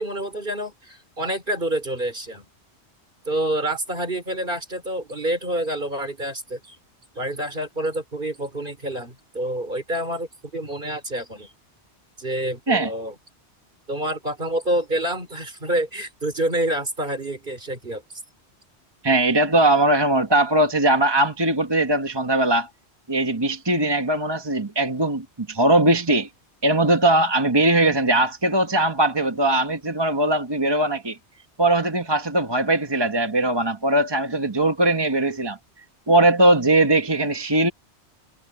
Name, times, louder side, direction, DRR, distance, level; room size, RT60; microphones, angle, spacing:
voice 1, 0.0-2.5 3.3-6.8 7.2-10.3 10.5-11.5 12.2-13.1 13.9-18.0, right 1 dB, 50° right, 4.1 m, -27 dB
voice 2, 19.0-22.7 23.1-26.3 26.6-31.2 31.6-35.6 36.1-37.7, right 1 dB, 25° right, 1.3 m, -20 dB
omnidirectional pair, 1.1 m